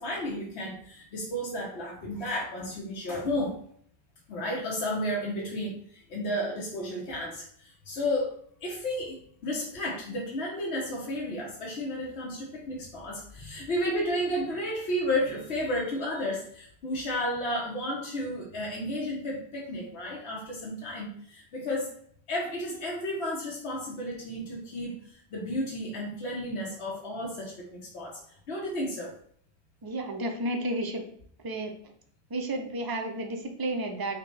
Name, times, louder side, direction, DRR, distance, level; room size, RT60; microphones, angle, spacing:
voice 1, 0.0-3.5 4.3-8.3 8.6-9.2 9.4-21.9 22.3-29.1, left 1 dB, 80° left, -3 dB, 1.2 m, -32 dB
voice 2, 29.8-31.0 31.4-31.7 32.3-34.2, right 1 dB, 35° right, 4 dB, 0.3 m, -32 dB
5.5 x 2.2 x 3.2 m, 0.62 s
omnidirectional pair, 1.1 m